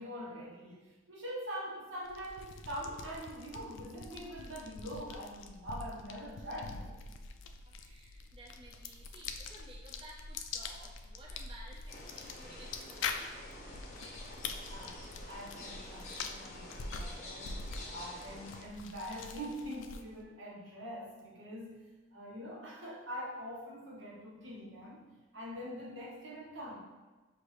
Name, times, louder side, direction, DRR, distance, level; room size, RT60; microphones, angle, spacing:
voice 1, 0.0-7.0 14.7-17.6 17.9-25.0 25.3-26.8, equal, 85° right, -5 dB, 1.2 m, -44 dB
sound 1, 2.0-20.2, left 4 dB, 85° left, 0.3 m, -44 dB
voice 2, 7.5-13.2, right 1 dB, 25° right, -3 dB, 0.4 m, -55 dB
sound 2, 11.9-18.6, left 1 dB, 40° left, 0.6 m, -48 dB
5.9 x 2.6 x 3.2 m, 1.2 s
head